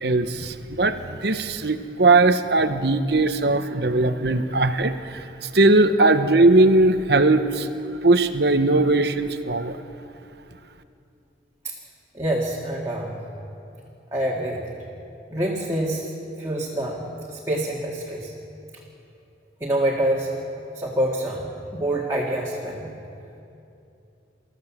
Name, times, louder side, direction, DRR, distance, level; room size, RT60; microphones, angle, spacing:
voice 1, 0.0-5.2 5.5-7.7 8.0-9.8, right 2 dB, 55° right, 9 dB, 0.9 m, -19 dB
voice 2, 12.1-13.2 14.1-14.6 15.3-16.1 16.4-18.3 19.6-20.3 20.7-22.9, right 1 dB, 15° right, -4 dB, 2.0 m, -26 dB
26.0 x 14.5 x 7.4 m, 2.7 s
head